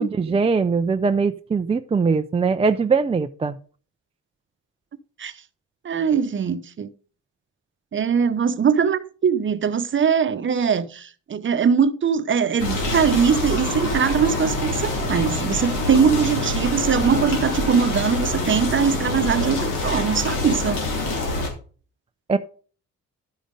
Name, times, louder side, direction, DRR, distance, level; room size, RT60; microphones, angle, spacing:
voice 1, 0.0-3.6 22.3-22.4, right 5 dB, 20° right, 0.4 m, -21 dB
voice 2, 5.8-6.9 7.9-20.9, right 6 dB, 40° right, 0.9 m, -21 dB
sound 1, 12.6-21.5, left 2 dB, 90° left, 3.3 m, -25 dB
11.5 x 5.2 x 5.2 m
cardioid pair, 90°, 30 cm